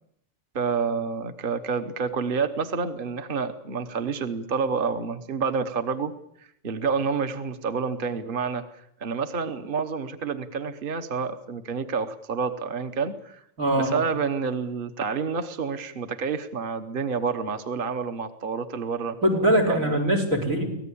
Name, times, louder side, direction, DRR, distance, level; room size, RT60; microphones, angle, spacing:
voice 1, 0.5-6.1 6.4-13.4 13.8-19.2 19.7-20.0, right 5 dB, 45° right, 9 dB, 1.3 m, -29 dB
voice 2, 13.6-14.0 19.2-20.7, right 1 dB, 85° right, 4 dB, 5.7 m, -22 dB
24.5 x 18.0 x 8.6 m, 0.72 s
omnidirectional pair, 1.4 m